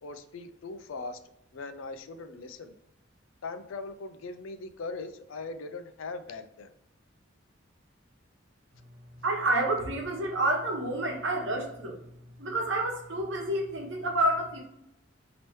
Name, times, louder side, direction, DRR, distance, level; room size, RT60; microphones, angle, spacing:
voice 1, 0.0-1.2 1.5-2.7 3.4-6.7, left 3 dB, 85° left, 10 dB, 0.5 m, -40 dB
voice 2, 9.1-12.0 12.4-14.6, right 1 dB, 65° right, 1 dB, 1.0 m, -29 dB
4.5 x 2.9 x 3.0 m, 0.80 s
head